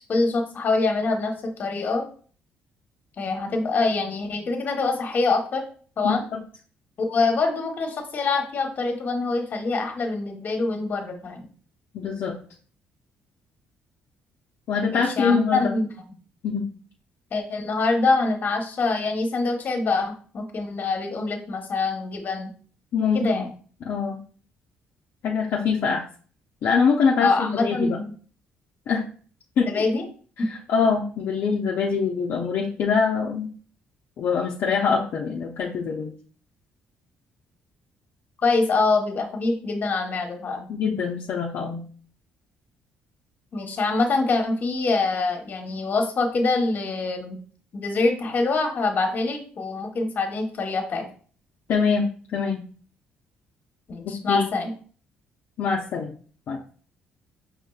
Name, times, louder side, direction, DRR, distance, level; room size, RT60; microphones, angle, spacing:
voice 1, 0.1-2.1 3.2-5.6 6.0-6.2 7.0-11.5 14.9-15.9 17.3-22.5 23.1-23.5 27.2-28.1 29.7-30.1 30.4-30.5 38.4-40.7 43.5-47.4 47.7-51.1 53.9-54.7, left 3 dB, 50° left, 3 dB, 1.1 m, -25 dB
voice 2, 6.0-6.4 11.9-12.3 14.7-15.6 16.4-16.7 22.9-23.4 23.8-24.2 25.2-26.0 26.6-28.0 28.9-29.0 29.6-29.8 30.5-33.5 34.2-36.1 40.7-41.8 51.7-52.1 52.3-52.6 54.3-54.5 55.6-56.1 56.5-56.6, left 5 dB, 65° left, -2 dB, 0.6 m, -24 dB
5.1 x 3.7 x 2.4 m, 0.43 s
cardioid pair, 85°, 4 cm